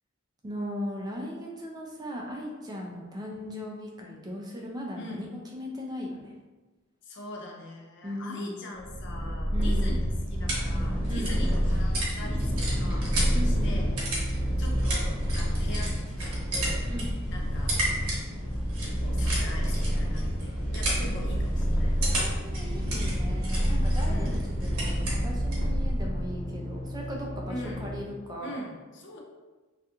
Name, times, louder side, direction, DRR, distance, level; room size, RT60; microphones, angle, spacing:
voice 1, 0.4-5.3 5.5-6.3 8.0-8.6 9.5-9.9 11.1-11.4 13.3-13.8 16.9-17.1 22.1-28.7, equal, 20° right, -1 dB, 0.3 m, -37 dB
voice 2, 7.0-13.1 13.4-14.0 14.6-16.8 17.3-17.8 19.0-22.2 24.1-24.5 27.5-27.9 28.4-29.2, left 1 dB, 55° left, -1 dB, 0.5 m, -42 dB
Purr, 8.8-26.5, equal, 15° left, 0.8 m, -28 dB
sound 1, 10.0-25.7, right 1 dB, 85° right, 0.8 m, -36 dB
sound 2, 11.8-28.0, left 1 dB, 35° right, 0.8 m, -40 dB
2.4 x 2.3 x 2.8 m, 1.2 s
head